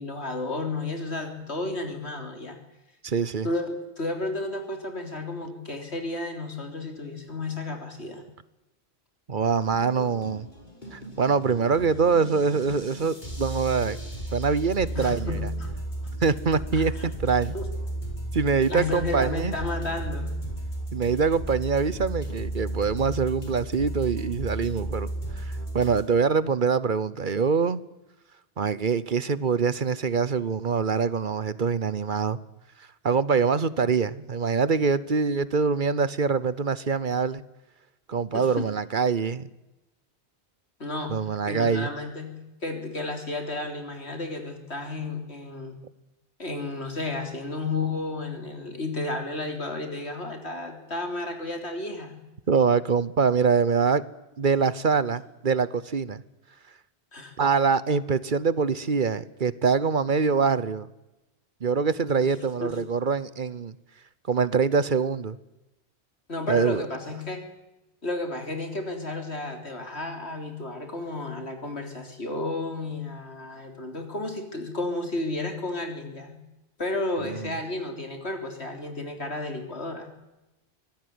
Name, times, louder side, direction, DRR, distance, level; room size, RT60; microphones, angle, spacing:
voice 1, 0.0-2.6 3.4-8.2 14.9-15.7 16.7-17.1 17.5-17.6 18.7-20.3 38.3-38.6 40.8-41.1 41.5-42.3 42.6-45.8 46.4-52.2 57.1-57.3 62.6-62.8 66.3-67.4 68.0-76.4 76.8-80.1, left 2 dB, 75° left, 5 dB, 4.0 m, -32 dB
voice 2, 3.0-3.5 9.3-10.5 10.9-14.0 14.3-15.5 16.2-17.5 18.3-19.5 20.9-25.1 25.4-27.8 28.6-32.4 33.0-37.4 38.1-39.5 41.1-41.9 52.5-54.0 54.4-56.2 57.4-60.9 61.6-63.7 64.3-65.4 66.5-66.8 77.2-77.5, right 5 dB, 50° right, 17 dB, 1.1 m, -24 dB
sound 1, 9.4-26.0, right 1 dB, 45° left, 5.5 m, -34 dB
24.5 x 17.5 x 9.6 m, 0.99 s
omnidirectional pair, 1.1 m